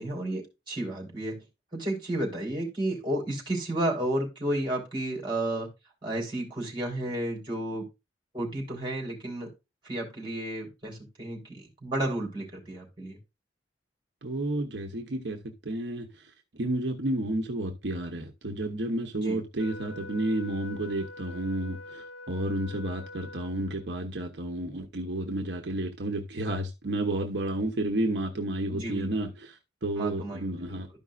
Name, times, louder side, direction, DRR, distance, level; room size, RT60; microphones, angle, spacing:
voice 1, 0.0-1.4 1.7-5.7 6.0-7.8 8.3-9.5 9.8-13.2 19.2-19.4 28.7-29.1 30.0-30.5, right 1 dB, 25° right, 3.6 m, -32 dB
voice 2, 14.2-30.9, right 1 dB, 75° right, 0.9 m, -31 dB
Wind instrument woodwind instrument, 19.6-24.0, left 2 dB, 85° left, 0.7 m, -45 dB
13.0 x 5.4 x 2.4 m
head